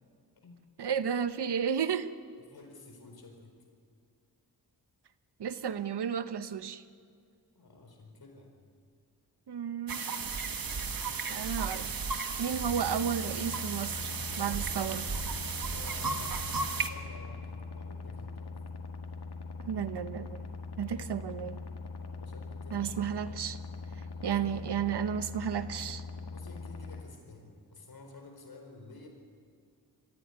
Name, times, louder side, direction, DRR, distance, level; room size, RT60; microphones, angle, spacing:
voice 1, 0.8-2.1 5.4-6.8 9.5-10.0 11.3-11.9 12.4-14.1 14.4-15.1 19.6-20.4 20.8-21.6 22.7-23.6 24.2-26.0, right 8 dB, 85° right, 12 dB, 1.0 m, -32 dB
voice 2, 2.4-3.6 7.5-8.5 10.6-11.2 15.6-16.4 16.8-18.5 22.0-23.3 24.2-24.9 26.3-29.1, left 3 dB, 65° left, 3 dB, 4.4 m, -52 dB
sound 1, 9.9-16.9, right 4 dB, 60° right, 1.6 m, -35 dB
sound 2, 12.5-27.0, left 4 dB, 80° left, 2.0 m, -42 dB
23.0 x 15.5 x 9.8 m, 2.4 s
wide cardioid pair, 85°, 39 cm